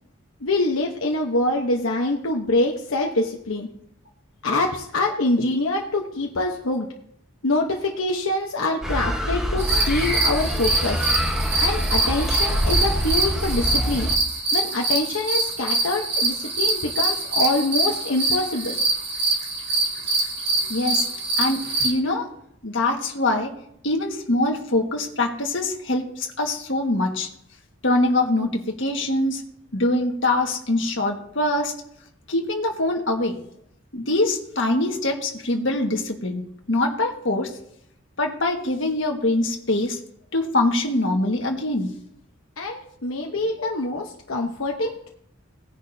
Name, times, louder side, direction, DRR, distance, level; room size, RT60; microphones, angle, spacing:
voice 1, 0.4-3.7 4.4-6.9 7.4-11.1 11.6-14.1 14.5-18.8 42.6-45.1, left 2 dB, 75° left, 0 dB, 1.1 m, -25 dB
sound 1, 8.8-14.2, equal, 5° right, 1.2 m, -25 dB
sound 2, 9.6-21.9, right 2 dB, 50° right, 2.3 m, -24 dB
voice 2, 20.7-22.3 22.6-23.5 23.8-27.3 27.8-29.4 29.7-31.7 32.3-33.4 33.9-36.4 36.7-37.5 38.2-40.0 40.3-41.9 43.6-43.7, left 2 dB, 60° left, 2 dB, 1.7 m, -23 dB
18.0 x 10.0 x 2.8 m, 0.71 s
head